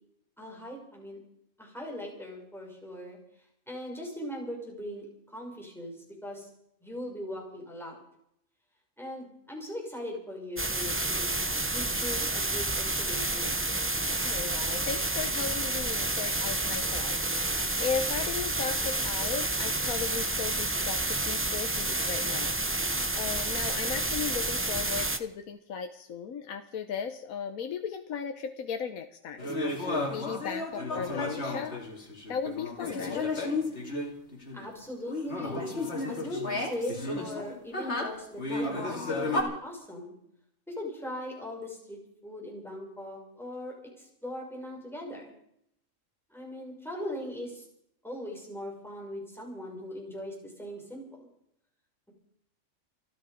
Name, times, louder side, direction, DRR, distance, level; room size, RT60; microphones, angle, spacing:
voice 1, 0.4-1.2 1.6-3.2 3.7-5.9 6.2-6.5 6.8-8.0 9.0-13.6 34.5-35.8 36.1-40.1 40.7-42.0 42.2-45.3 46.3-47.6 48.0-51.2, left 1 dB, ahead, -3 dB, 5.9 m, -40 dB
sound 1, 10.6-25.2, right 2 dB, 15° right, 0.5 m, -30 dB
voice 2, 14.1-29.5 29.8-31.8 32.3-33.3, left 6 dB, 80° left, 6 dB, 1.4 m, -36 dB
sound 2, 29.4-34.6 35.1-39.4, left 2 dB, 50° left, 2.8 m, -33 dB
28.5 x 9.8 x 5.1 m, 0.74 s
omnidirectional pair, 1.5 m